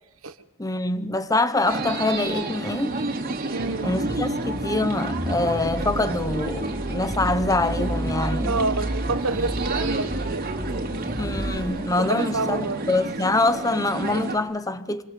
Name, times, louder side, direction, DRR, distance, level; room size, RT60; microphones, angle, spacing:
voice 1, 0.6-2.9 3.8-8.6 11.2-15.0, left 2 dB, 15° left, 1.0 m, -25 dB
sound 1, 1.7-14.4, right 2 dB, 45° right, 3.3 m, -30 dB
voice 2, 3.5-3.9 8.5-10.5 12.0-12.8, right 3 dB, 75° right, 1.3 m, -28 dB
sound 2, 3.6-11.6, right 1 dB, 5° right, 4.6 m, -32 dB
26.5 x 26.5 x 7.6 m
head